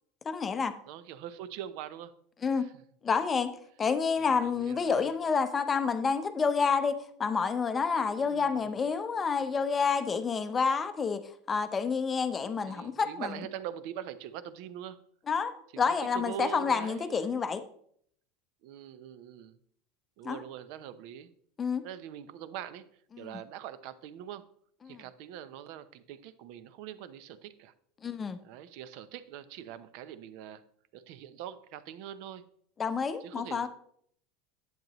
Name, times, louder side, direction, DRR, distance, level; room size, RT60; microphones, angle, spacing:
voice 1, 0.2-0.7 2.4-2.7 3.0-3.5 3.8-11.2 11.5-13.4 15.3-17.6 20.2-20.4 21.6-21.8 23.1-23.3 24.8-25.0 28.0-28.4 32.8-33.7, left 5 dB, 15° left, 11 dB, 0.6 m, -29 dB
voice 2, 0.9-2.1 2.5-2.7 4.2-5.1 8.2-8.8 12.7-15.0 15.7-17.5 18.6-19.6 20.2-21.3 21.8-22.9 23.2-24.4 24.8-27.7 28.4-30.6 30.9-32.4 33.2-33.7, right 10 dB, 55° right, 14 dB, 0.7 m, -43 dB
10.5 x 9.0 x 3.0 m, 0.64 s
supercardioid pair, 165°, 0 cm